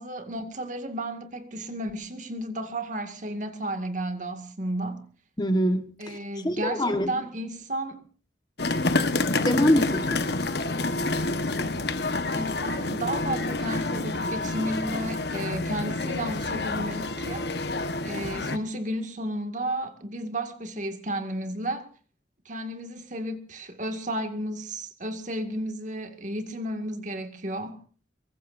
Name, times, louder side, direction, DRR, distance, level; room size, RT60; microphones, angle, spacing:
voice 1, 0.0-5.0 6.0-8.0 8.9-9.2 12.3-17.5 18.0-21.9 22.5-27.8, right 1 dB, 45° right, 2.1 m, -33 dB
voice 2, 5.4-6.2 6.4-7.1 9.4-10.3, equal, 25° left, 1.4 m, -24 dB
sound 1, 8.6-18.6, left 2 dB, 65° left, 1.3 m, -28 dB
24.5 x 22.5 x 2.7 m
head